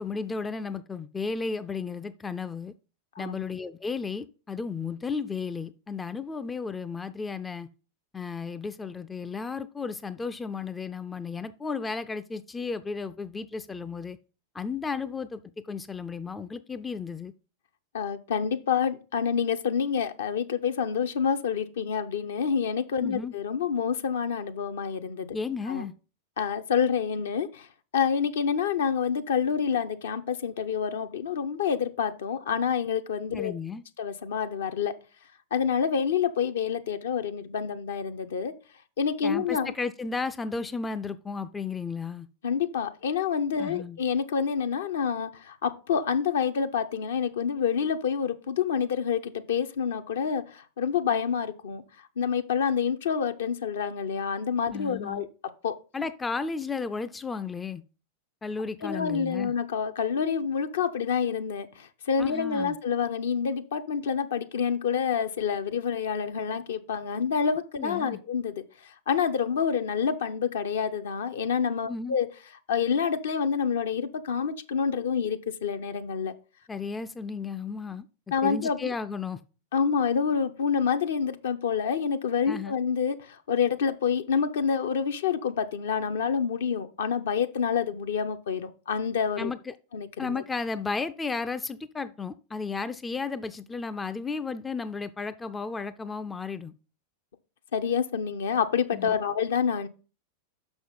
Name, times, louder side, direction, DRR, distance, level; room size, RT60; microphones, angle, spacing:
voice 1, 0.0-2.7 3.2-7.7 8.1-14.2 14.5-17.3 23.0-23.3 25.3-25.9 33.3-33.8 39.2-42.3 43.6-44.0 54.7-55.2 55.9-57.8 58.4-59.5 62.2-62.8 67.8-68.2 71.9-72.2 76.7-78.1 78.4-79.4 82.5-82.7 89.4-89.7 90.2-96.7 98.9-99.1, left 4 dB, 15° left, 0.4 m, -34 dB
voice 2, 17.9-25.4 25.7-25.9 26.4-27.7 27.9-33.5 34.0-34.9 35.5-38.5 39.0-39.7 42.4-51.8 52.2-55.3 55.6-55.8 58.8-68.6 69.1-72.3 72.7-76.3 78.3-78.9 79.7-89.5 89.9-90.3 97.7-99.9, left 7 dB, 60° left, 0.7 m, -27 dB
6.1 x 6.1 x 5.2 m
figure-of-eight pair, 90°, 0 cm